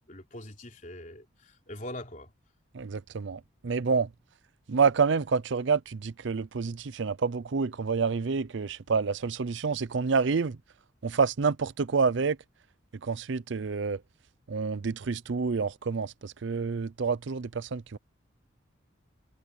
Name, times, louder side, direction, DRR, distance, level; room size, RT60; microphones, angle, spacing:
voice 1, 0.0-2.3, left 1 dB, 40° left, 3.7 m, -42 dB
voice 2, 2.7-4.1 4.7-10.6 11.0-12.4 13.1-14.0 14.5-18.0, right 5 dB, 65° right, 0.5 m, -28 dB
head